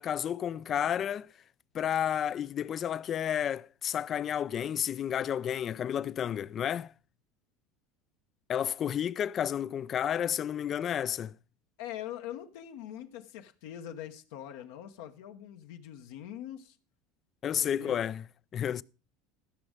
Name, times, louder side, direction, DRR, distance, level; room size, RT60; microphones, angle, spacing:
voice 1, 0.0-1.3 1.7-6.9 8.5-11.3 17.4-18.2 18.5-18.8, left 9 dB, 40° left, 0.4 m, -31 dB
voice 2, 11.8-16.8 17.4-18.0 18.7-18.8, left 11 dB, 70° left, 0.9 m, -43 dB
15.0 x 6.1 x 5.1 m
hypercardioid pair, 80°, 0 cm